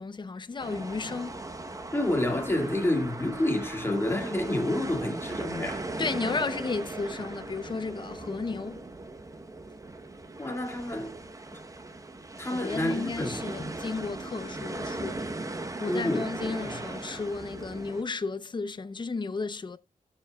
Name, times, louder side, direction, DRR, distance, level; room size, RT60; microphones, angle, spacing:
voice 1, 0.0-1.4 6.0-8.8 12.5-15.4 15.8-19.8, left 4 dB, 30° left, 0.7 m, -33 dB
sound 1, 0.6-18.0, right 2 dB, 25° right, 1.0 m, -38 dB
voice 2, 1.9-5.9 10.4-11.2 12.4-13.7 15.9-16.6, left 1 dB, 15° left, 2.0 m, -29 dB
14.5 x 7.5 x 2.3 m
wide cardioid pair, 140°, 15 cm